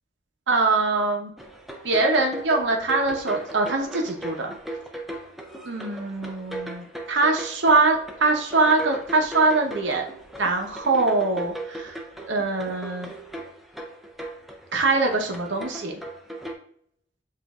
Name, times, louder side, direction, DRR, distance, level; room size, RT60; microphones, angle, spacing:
voice 1, 0.5-1.3 1.8-4.5 5.7-10.1 10.4-12.0 12.3-13.1 14.7-15.9, right 3 dB, 70° right, 2 dB, 0.8 m, -23 dB
sound 1, 1.4-16.5, right 1 dB, ahead, 0.4 m, -38 dB
7.4 x 2.6 x 2.3 m, 0.67 s
head